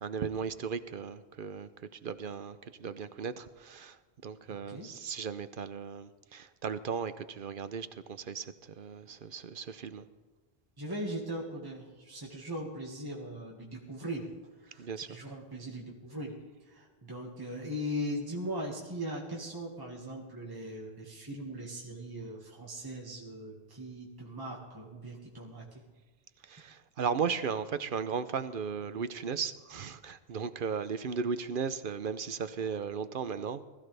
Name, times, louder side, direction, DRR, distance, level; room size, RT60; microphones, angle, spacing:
voice 1, 0.0-1.7 2.0-4.0 4.2-10.0 14.8-15.1 26.4-33.7, right 6 dB, 60° right, 12 dB, 0.8 m, -36 dB
voice 2, 4.5-4.9 10.8-14.3 14.6-16.3 16.7-25.8, equal, 20° right, -2 dB, 1.8 m, -39 dB
20.0 x 14.0 x 3.4 m, 1.3 s
omnidirectional pair, 1.1 m